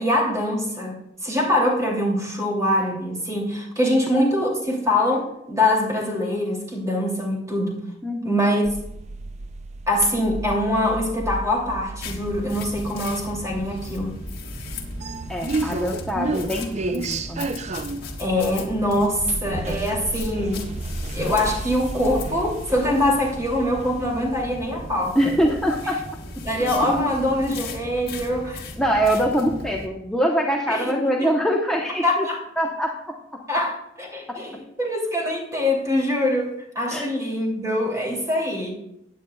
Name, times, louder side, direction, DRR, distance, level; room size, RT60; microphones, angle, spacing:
voice 1, 0.0-7.8 8.2-8.6 9.9-14.2 18.2-20.6 21.1-25.2 26.4-28.6 30.7-30.9 31.2-31.3 32.0-32.4 33.5-38.7, left 1 dB, 15° right, -2 dB, 2.7 m, -23 dB
voice 2, 8.0-8.4 15.3-17.5 25.1-26.0 28.8-32.2 32.6-33.2 36.9-37.1, equal, 5° left, -2 dB, 0.9 m, -23 dB
sound 1, 8.7-24.3, right 2 dB, 35° right, 0.5 m, -33 dB
sound 2, 12.0-29.9, left 1 dB, 55° left, 1.7 m, -36 dB
16.0 x 9.2 x 2.3 m, 0.81 s
head